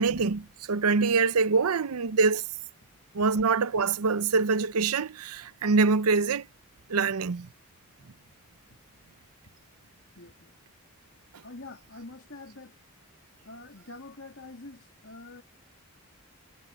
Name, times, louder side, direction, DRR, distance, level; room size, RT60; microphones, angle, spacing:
voice 1, 0.0-2.4 3.1-6.5 6.9-7.5, right 4 dB, 85° right, 0.7 m, -25 dB
voice 2, 10.1-10.5 11.4-12.8 13.4-15.4, left 2 dB, 60° left, 3.0 m, -45 dB
head